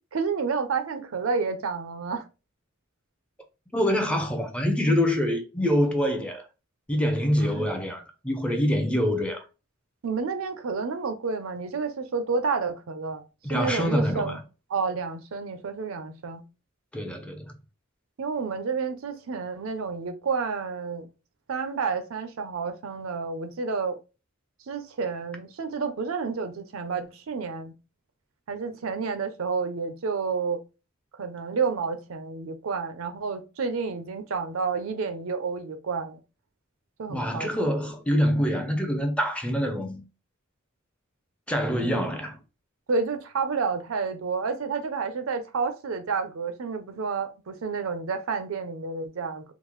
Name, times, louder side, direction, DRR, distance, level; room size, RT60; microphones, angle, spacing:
voice 1, 0.1-2.2 7.4-7.7 10.0-13.2 13.5-14.4 14.7-16.4 18.2-21.1 21.5-24.0 24.7-27.7 28.5-30.6 31.2-36.2 37.0-37.7 41.8-42.1 42.9-49.4, right 5 dB, 80° right, 0.5 m, -30 dB
voice 2, 3.7-6.4 6.9-9.4 13.4-14.4 16.9-17.5 37.1-40.0 41.5-42.4, equal, 5° left, 0.5 m, -25 dB
3.6 x 2.0 x 3.0 m
head